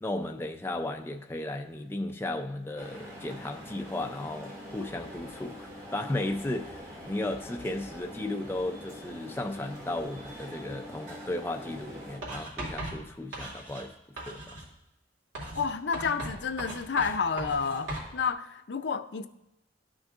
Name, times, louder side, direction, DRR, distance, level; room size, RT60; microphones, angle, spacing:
voice 1, 0.0-13.9 14.3-14.4, left 1 dB, 15° left, 0.4 m, -35 dB
sound 1, 2.8-12.2, equal, 50° right, 2.3 m, -44 dB
Writing, 12.2-13.9 14.2-14.7 15.3-18.1, right 1 dB, 85° right, 2.7 m, -38 dB
voice 2, 15.5-19.3, left 5 dB, 70° left, 0.5 m, -30 dB
13.0 x 6.2 x 2.4 m
head